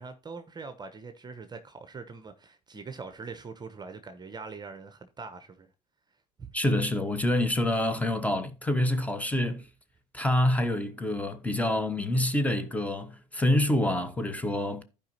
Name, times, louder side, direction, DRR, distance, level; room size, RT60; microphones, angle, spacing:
voice 1, 0.0-5.7 6.4-6.5, right 4 dB, 20° right, 1.0 m, -43 dB
voice 2, 6.5-9.6 10.1-14.8, left 1 dB, 5° left, 1.3 m, -27 dB
14.5 x 5.2 x 2.8 m
hypercardioid pair, 70°, 20 cm